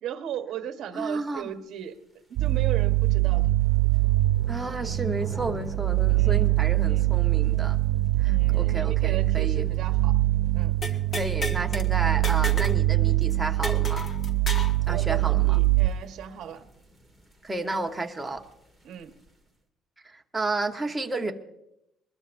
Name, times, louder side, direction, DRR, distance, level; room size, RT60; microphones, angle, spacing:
voice 1, 0.0-2.0 2.3-3.5 6.1-6.4 6.9-7.1 8.2-10.2 10.5-10.7 14.9-16.7 18.8-19.1, right 9 dB, 60° right, 6 dB, 1.3 m, -37 dB
voice 2, 0.9-1.5 4.5-7.8 8.2-9.7 11.2-14.1 14.9-15.6 17.4-18.4 20.0-21.3, right 2 dB, 10° right, 3 dB, 1.1 m, -32 dB
sound 1, 2.0-19.5, equal, 10° left, 2.6 m, -48 dB
sound 2, 2.4-15.9, right 18 dB, 85° right, 0.8 m, -23 dB
sound 3, 10.8-11.9 12.2-12.8 13.1-13.2 13.6-14.8, left 1 dB, 30° left, 1.3 m, -32 dB
23.0 x 20.5 x 2.6 m, 0.84 s
cardioid pair, 160°, 0 cm